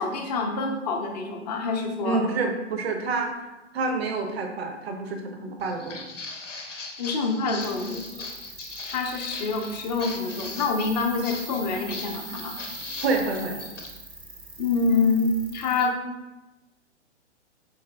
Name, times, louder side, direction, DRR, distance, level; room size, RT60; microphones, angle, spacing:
voice 1, 0.0-2.3 7.0-8.0 8.8-12.5 14.6-16.0, left 4 dB, 35° left, 2 dB, 0.5 m, -26 dB
voice 2, 2.0-3.4 3.7-6.1 13.0-13.6, right 3 dB, 60° right, 4 dB, 0.6 m, -28 dB
Walk footsteps, 5.6-13.9, left 3 dB, 85° left, 0.7 m, -39 dB
sound 1, 7.6-15.9, right 3 dB, 20° right, 0.5 m, -42 dB
4.7 x 3.1 x 2.2 m, 1.1 s
figure-of-eight pair, 115°, 36 cm